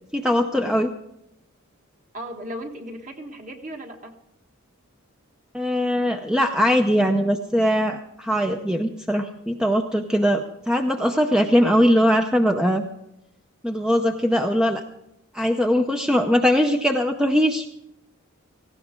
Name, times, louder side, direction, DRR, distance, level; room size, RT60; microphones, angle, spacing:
voice 1, 0.1-0.9 5.5-12.8 13.6-14.8 15.3-17.7, equal, 5° right, 4 dB, 0.6 m, -21 dB
voice 2, 2.1-4.2, equal, 35° right, 3 dB, 1.6 m, -36 dB
18.0 x 15.5 x 3.7 m, 0.81 s
head